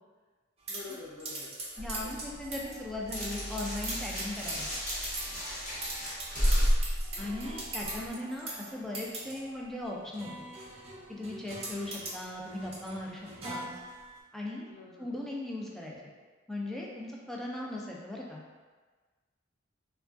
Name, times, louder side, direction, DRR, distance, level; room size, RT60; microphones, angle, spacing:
voice 1, 0.7-2.2 8.1-8.2 14.7-15.2, left 3 dB, 75° left, -4 dB, 0.6 m, -48 dB
sound 1, 0.7-14.2, right 2 dB, 30° right, 0.7 m, -42 dB
sound 2, 1.8-8.1, equal, 40° left, 1.0 m, -32 dB
voice 2, 1.8-4.7 7.2-10.5 11.1-13.7 14.3-14.7 15.0-16.1 16.5-18.4, left 1 dB, ahead, -3 dB, 0.4 m, -38 dB
3.4 x 2.3 x 2.5 m, 1.4 s
head